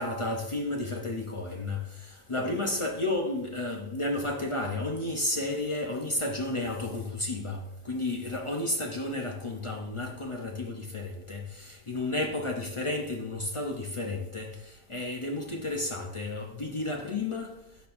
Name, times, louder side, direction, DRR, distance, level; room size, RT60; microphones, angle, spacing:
voice 1, 0.0-17.5, left 2 dB, 40° left, 0.4 m, -32 dB
12.5 x 4.3 x 2.5 m
omnidirectional pair, 1.5 m